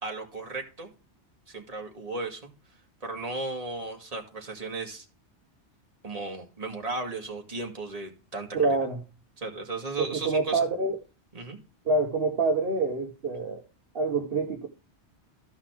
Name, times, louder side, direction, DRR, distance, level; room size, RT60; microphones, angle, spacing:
voice 1, 0.0-0.9 1.5-2.5 3.0-5.1 6.0-8.8 9.4-10.7 11.3-11.6, right 3 dB, 35° right, 1.9 m, -35 dB
voice 2, 8.5-9.0 10.0-10.9 11.8-13.6 13.9-14.7, right 3 dB, 55° right, 1.4 m, -26 dB
13.0 x 5.6 x 3.5 m
omnidirectional pair, 1.2 m